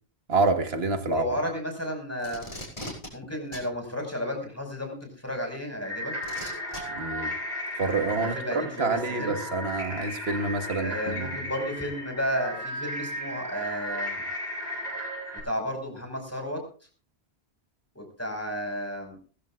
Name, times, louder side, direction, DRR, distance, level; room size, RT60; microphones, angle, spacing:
voice 1, 0.3-1.2 6.9-7.3 7.8-11.3, right 3 dB, 70° right, 1.8 m, -27 dB
voice 2, 1.1-2.5 3.1-6.1 8.2-9.4 10.8-14.2 15.4-16.6 18.0-19.2, equal, 15° left, 5.4 m, -32 dB
Packing tape duct tape, 2.2-3.1 3.5-3.7 5.0-5.1 6.2-6.8 7.9-8.0, left 1 dB, 30° left, 6.7 m, -38 dB
sound 1, 5.8-15.4, equal, 40° right, 8.1 m, -35 dB
22.0 x 15.0 x 2.5 m
omnidirectional pair, 1.1 m